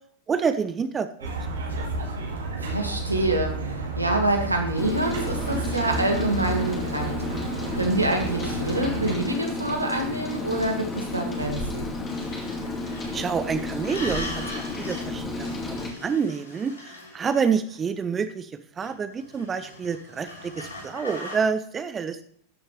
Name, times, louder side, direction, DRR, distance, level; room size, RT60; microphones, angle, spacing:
voice 1, 0.3-1.3 13.1-14.4 14.7-18.5 18.8-22.2, right 6 dB, 20° right, 11 dB, 0.6 m, -28 dB
sound 1, 1.2-9.1, right 3 dB, 70° right, 2.2 m, -31 dB
voice 2, 2.6-11.9, right 2 dB, 85° right, 3 dB, 1.8 m, -26 dB
Rain, 4.8-15.9, left 2 dB, 15° left, 2.2 m, -32 dB
sound 2, 12.1-13.2 13.7-15.1 15.3-17.7 18.8-21.4, left 1 dB, 75° left, 3.4 m, -40 dB
13.0 x 7.4 x 3.3 m, 0.63 s
figure-of-eight pair, 90°, 0 cm